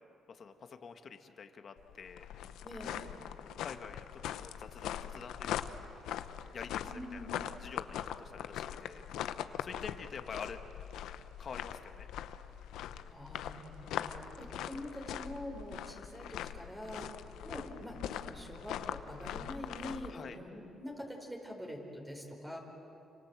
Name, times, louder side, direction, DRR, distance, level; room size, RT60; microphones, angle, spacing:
voice 1, 0.3-2.3 3.6-4.1 4.4-5.8 6.5-7.3 7.6-9.3 9.6-10.6 11.4-12.1 20.1-20.4, left 6 dB, 50° left, 7 dB, 1.8 m, -47 dB
sound 1, 1.8-20.1, left 10 dB, 85° left, 0.9 m, -42 dB
voice 2, 2.6-3.2 6.8-7.3 13.0-17.1 17.4-22.6, equal, 10° right, 0 dB, 4.9 m, -45 dB
30.0 x 25.5 x 7.6 m, 3.0 s
cardioid pair, 90°, 0 cm